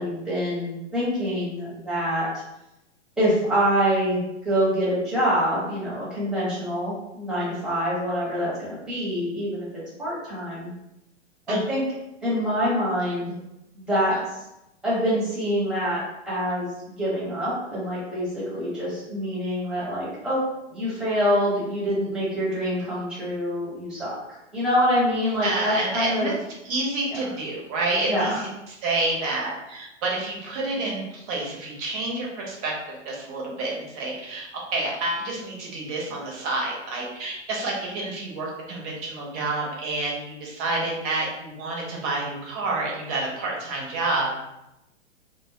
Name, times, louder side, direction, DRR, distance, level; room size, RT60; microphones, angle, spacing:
voice 1, 0.0-2.3 3.2-10.7 11.5-11.8 12.2-13.3 13.7-14.4 14.8-20.4 20.7-24.2 24.5-26.3 27.1-27.2 28.0-28.4, equal, ahead, -9 dB, 0.9 m, -25 dB
voice 2, 25.4-26.3 26.6-28.5 28.8-44.3, right 2 dB, 30° right, -3 dB, 0.7 m, -29 dB
2.2 x 2.1 x 2.7 m, 0.90 s
figure-of-eight pair, 115°, 37 cm